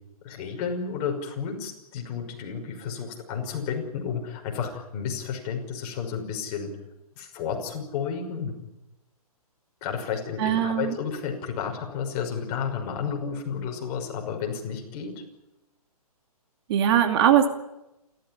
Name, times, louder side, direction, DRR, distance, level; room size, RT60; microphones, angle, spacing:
voice 1, 0.2-6.8 7.2-8.6 9.8-15.2, left 6 dB, 30° left, 3 dB, 5.9 m, -32 dB
voice 2, 10.4-10.9 16.7-17.5, right 10 dB, 40° right, 6 dB, 2.6 m, -20 dB
29.0 x 14.0 x 9.9 m, 0.95 s
hypercardioid pair, 140°, 20 cm